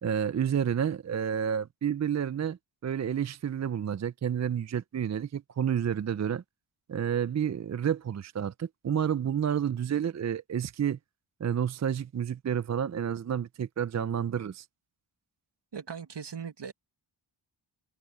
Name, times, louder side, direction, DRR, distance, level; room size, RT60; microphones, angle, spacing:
voice 1, 0.0-6.4 6.9-11.0 11.4-14.7, right 8 dB, 35° right, 0.4 m, -30 dB
voice 2, 15.7-16.7, right 7 dB, 60° right, 1.8 m, -39 dB
wide cardioid pair, 125°, 49 cm